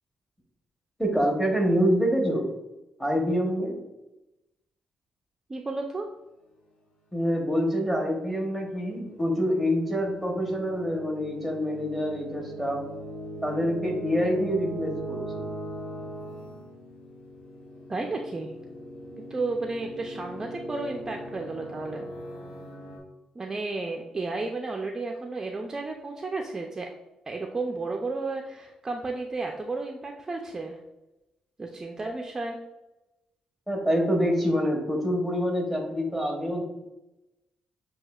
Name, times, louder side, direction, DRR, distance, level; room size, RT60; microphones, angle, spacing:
voice 1, 1.0-2.5 3.0-3.8 7.1-12.8 13.4-15.4 33.7-36.6, equal, 5° left, 0 dB, 0.9 m, -26 dB
voice 2, 5.5-6.1 17.9-18.6 19.3-22.1 23.4-26.9 27.3-30.8 31.6-32.6, right 3 dB, 20° right, 2 dB, 0.3 m, -32 dB
sound 1, 8.1-23.0, right 1 dB, 85° left, 0.9 m, -40 dB
7.2 x 2.7 x 2.3 m, 0.98 s
cardioid pair, 140°, 2 cm